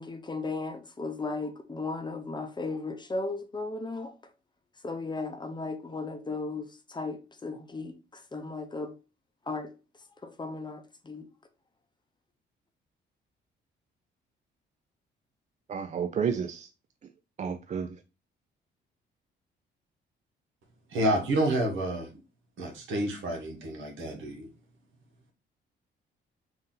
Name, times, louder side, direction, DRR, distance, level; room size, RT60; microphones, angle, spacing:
voice 1, 0.0-4.1 4.8-8.9 9.5-9.7 10.2-11.3, left 3 dB, 20° left, 0.7 m, -36 dB
voice 2, 15.7-16.7 17.4-18.0, right 7 dB, 35° right, 0.4 m, -31 dB
voice 3, 20.9-22.1 22.6-24.5, right 1 dB, 80° right, 1.3 m, -29 dB
3.9 x 2.7 x 3.7 m
cardioid pair, 90°, 20 cm